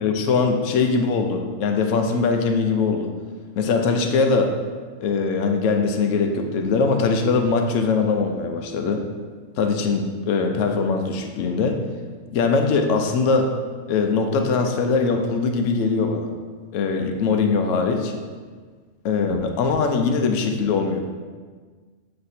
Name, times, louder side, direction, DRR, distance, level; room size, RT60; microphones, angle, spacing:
voice 1, 0.0-3.1 3.6-4.5 5.0-9.0 9.6-11.8 12.3-13.5 13.9-16.3 16.7-18.1 19.0-21.0, left 4 dB, 75° left, 5 dB, 1.0 m, -21 dB
7.0 x 3.3 x 4.1 m, 1.5 s
omnidirectional pair, 1.4 m